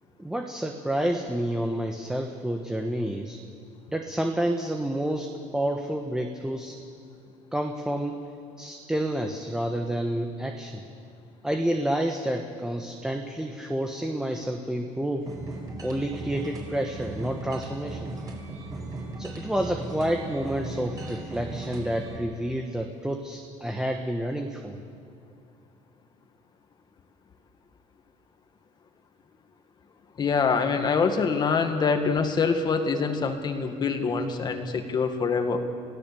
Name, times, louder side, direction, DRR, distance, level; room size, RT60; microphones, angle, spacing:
voice 1, 0.2-3.4 3.9-6.8 7.5-8.2 8.6-10.8 11.4-15.3 15.8-18.1 19.2-24.8, right 1 dB, 5° right, 3 dB, 1.2 m, -29 dB
sound 1, 15.3-22.2, right 2 dB, 25° right, 4.8 m, -37 dB
voice 2, 30.2-35.6, left 5 dB, 30° left, 6 dB, 1.8 m, -25 dB
29.0 x 17.0 x 7.0 m, 2.5 s
cardioid pair, 145°, 14 cm